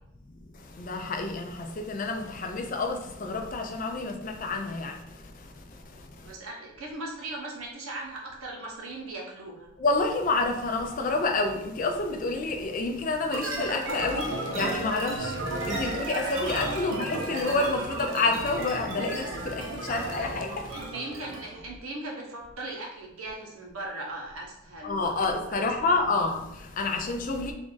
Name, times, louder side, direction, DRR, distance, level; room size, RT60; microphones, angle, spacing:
voice 1, 0.5-6.3 9.8-20.8 24.8-27.5, left 3 dB, 40° left, 0.4 m, -29 dB
voice 2, 6.2-9.7 16.8-16.9 20.7-26.0, right 2 dB, 85° right, 0.9 m, -39 dB
sound 1, 13.3-21.6, right 1 dB, 60° right, 0.8 m, -33 dB
3.5 x 2.5 x 3.8 m
head